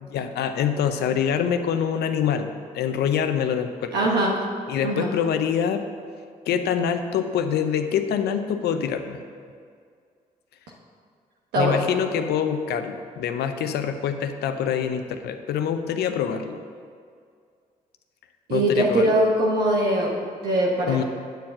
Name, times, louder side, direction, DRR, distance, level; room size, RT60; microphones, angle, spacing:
voice 1, 0.0-3.9 4.7-5.8 6.5-9.2 11.6-16.6 18.5-19.1 20.9-21.0, left 8 dB, 80° left, 8 dB, 0.7 m, -25 dB
voice 2, 3.9-4.3 4.8-5.1 11.5-11.8 18.5-20.1 20.4-21.0, right 1 dB, 85° right, -3 dB, 1.1 m, -21 dB
9.2 x 4.6 x 7.4 m, 2.2 s
supercardioid pair, 50°, 17 cm